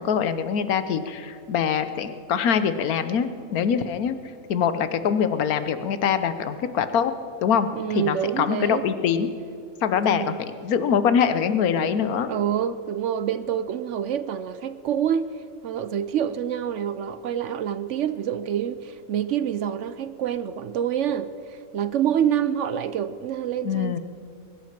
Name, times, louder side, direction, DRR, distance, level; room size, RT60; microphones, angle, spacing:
voice 1, 0.0-4.2 4.5-7.1 7.4-9.3 9.8-10.3 10.6-12.3 23.6-24.0, left 7 dB, 85° left, 1.3 m, -23 dB
voice 2, 7.7-8.9 10.1-10.4 12.3-15.3 15.6-24.0, right 9 dB, 65° right, 0.8 m, -27 dB
21.5 x 10.5 x 5.9 m
omnidirectional pair, 1.5 m